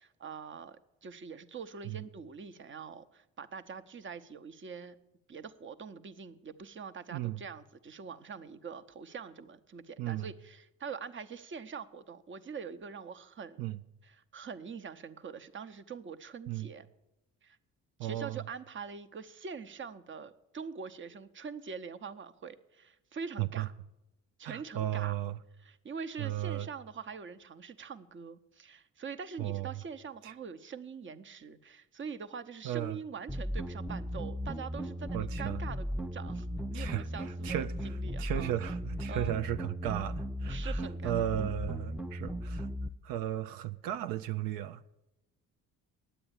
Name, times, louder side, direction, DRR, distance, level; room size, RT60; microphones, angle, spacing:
voice 1, 0.0-5.0 5.3-13.7 14.0-16.9 17.4-17.6 18.0-23.7 24.4-25.1 25.6-38.5 39.1-39.3 40.5-41.2, right 5 dB, 35° right, 0.8 m, -44 dB
voice 2, 18.0-18.4 23.4-23.7 24.4-25.4 26.2-26.7 29.4-29.7 30.2-30.3 32.6-33.0 35.1-35.6 36.7-42.7 43.0-44.8, right 12 dB, 85° right, 0.5 m, -35 dB
sound 1, 33.3-42.9, equal, ahead, 0.4 m, -36 dB
10.0 x 7.8 x 8.7 m
supercardioid pair, 80°, 33 cm